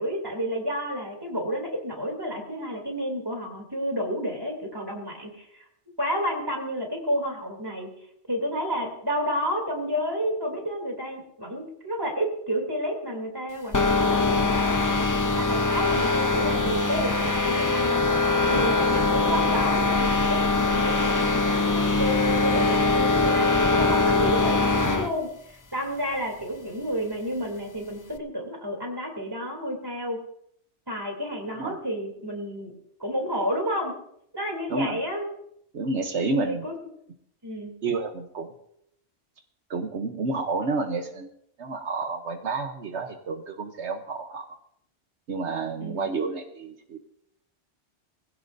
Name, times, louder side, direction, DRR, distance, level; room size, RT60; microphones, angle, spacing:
voice 1, 0.0-5.6 6.0-7.9 8.3-18.0 18.5-30.2 30.9-32.7 33.0-33.9 34.3-35.3 36.2-36.7 37.4-37.7 45.8-46.1, equal, 20° right, 1 dB, 3.2 m, -30 dB
sound 1, 13.7-25.1, left 3 dB, 20° left, 0.6 m, -22 dB
voice 2, 35.7-36.6 37.8-38.5 39.7-41.3 41.6-44.5 45.3-47.0, right 3 dB, 75° right, 5 dB, 1.3 m, -30 dB
21.0 x 15.5 x 2.7 m, 0.73 s
omnidirectional pair, 1.2 m